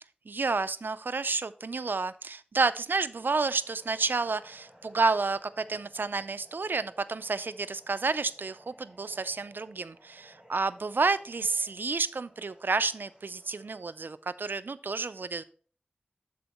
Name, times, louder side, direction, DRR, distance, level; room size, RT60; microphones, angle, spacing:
voice 1, 0.3-15.4, right 4 dB, 85° right, 14 dB, 0.4 m, -30 dB
sound 1, 3.1-14.3, equal, 25° right, 2.2 m, -59 dB
12.5 x 4.3 x 3.0 m, 0.42 s
wide cardioid pair, 50°, 3 cm